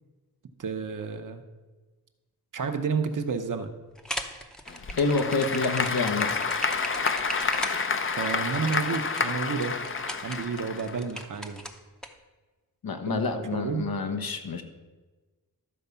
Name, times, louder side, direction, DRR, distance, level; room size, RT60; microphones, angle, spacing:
voice 1, 0.6-1.4 2.5-3.7 8.1-9.7 10.2-11.6 13.1-13.2 13.5-13.9, right 5 dB, 60° right, 7 dB, 0.9 m, -30 dB
sound 1, 4.0-12.1, equal, ahead, 0.7 m, -38 dB
Applause / Crowd, 4.7-11.2, left 4 dB, 35° left, 0.6 m, -29 dB
voice 2, 5.0-6.4 12.8-14.6, left 3 dB, 80° left, 6 dB, 1.2 m, -28 dB
12.5 x 4.7 x 6.9 m, 1.3 s
wide cardioid pair, 165°, 36 cm